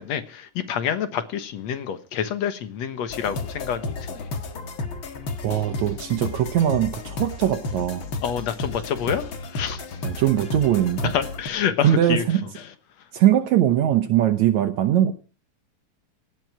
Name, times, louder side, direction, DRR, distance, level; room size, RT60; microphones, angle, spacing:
voice 1, 0.0-4.3 5.5-5.6 8.2-9.2 9.5-9.8 11.1-12.3, left 8 dB, 65° left, 11 dB, 2.3 m, -27 dB
sound 1, 3.1-11.5, left 3 dB, 45° left, 2.1 m, -33 dB
voice 2, 5.4-8.1 10.0-11.2 11.8-12.4 13.1-15.1, right 11 dB, 70° right, 8 dB, 2.3 m, -21 dB
18.0 x 12.5 x 4.9 m, 0.36 s
omnidirectional pair, 3.5 m